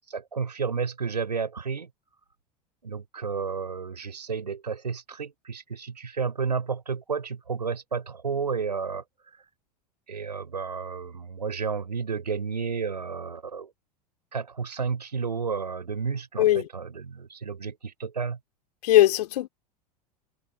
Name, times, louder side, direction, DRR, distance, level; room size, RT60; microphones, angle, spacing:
voice 1, 0.1-1.9 2.8-9.0 10.1-13.7 14.3-18.4, right 5 dB, 85° right, 5.5 m, -31 dB
voice 2, 16.4-16.7 18.8-19.5, left 14 dB, 70° left, 3.6 m, -19 dB
figure-of-eight pair, 85°, 21 cm